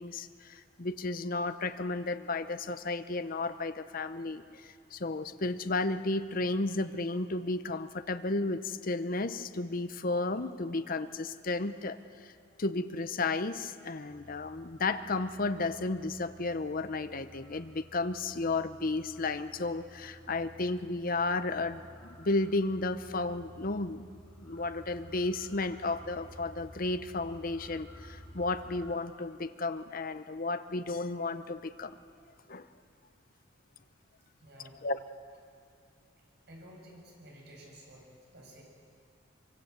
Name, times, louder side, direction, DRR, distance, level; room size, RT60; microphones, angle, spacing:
voice 1, 0.0-4.4 4.9-12.3 12.6-24.0 24.4-32.0 32.5-32.7 34.8-35.0, left 3 dB, 45° left, 10 dB, 0.8 m, -33 dB
sound 1, 14.1-28.9, equal, 5° left, 5.3 m, -53 dB
voice 2, 34.4-34.8 36.5-38.1 38.3-38.6, equal, 60° right, -1 dB, 7.1 m, -52 dB
24.0 x 24.0 x 8.1 m, 2.4 s
head